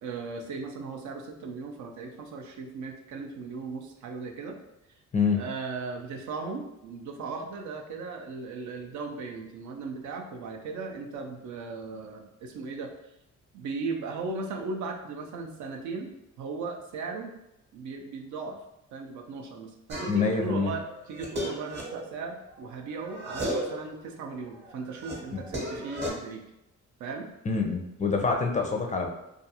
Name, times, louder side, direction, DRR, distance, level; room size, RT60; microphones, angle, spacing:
voice 1, 0.0-4.6 5.3-12.9 13.5-17.3 17.7-18.6 18.9-26.4 27.0-27.3, right 4 dB, 70° right, 3 dB, 0.5 m, -37 dB
sound 1, 19.9-20.4 20.8-22.7 23.0-23.9 24.3-26.1, equal, 35° right, 0.9 m, -35 dB
voice 2, 20.1-20.7 27.5-29.1, left 5 dB, 25° left, 2 dB, 0.4 m, -26 dB
2.4 x 2.4 x 2.8 m, 0.86 s
cardioid pair, 90°, 30 cm